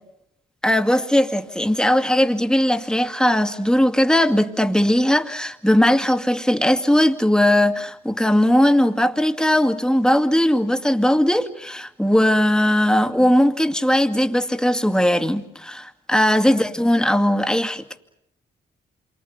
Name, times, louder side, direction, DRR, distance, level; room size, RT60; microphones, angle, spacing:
voice 1, 0.6-18.0, left 1 dB, 5° left, 2.3 m, -19 dB
28.0 x 24.0 x 6.8 m
supercardioid pair, 50°, 20 cm